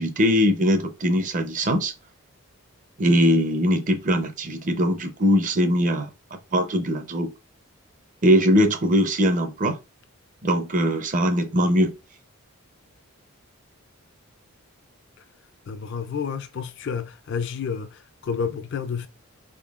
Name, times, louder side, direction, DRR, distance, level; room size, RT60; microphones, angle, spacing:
voice 1, 0.0-1.9 3.0-6.1 6.5-7.3 8.2-9.8 10.4-11.9, equal, 35° right, 0.5 m, -21 dB
voice 2, 15.7-19.1, left 6 dB, 55° left, 0.4 m, -30 dB
4.7 x 3.6 x 2.4 m
head